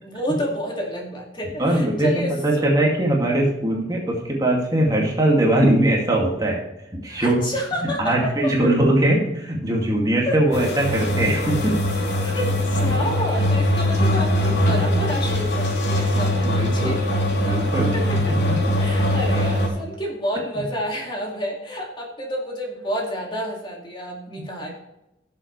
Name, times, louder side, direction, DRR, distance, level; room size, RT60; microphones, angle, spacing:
voice 1, 0.0-2.8 7.1-8.7 10.2-10.4 12.2-17.0 17.8-18.5 18.8-24.7, equal, 25° left, -1 dB, 2.3 m, -29 dB
voice 2, 1.6-6.6 6.9-7.4 7.8-11.8 16.1-17.0 17.4-17.9 18.5-18.6, right 1 dB, 20° right, -1 dB, 2.3 m, -21 dB
sound 1, 10.5-19.7, left 1 dB, 85° left, 3.2 m, -21 dB
16.5 x 7.3 x 3.2 m, 0.90 s
head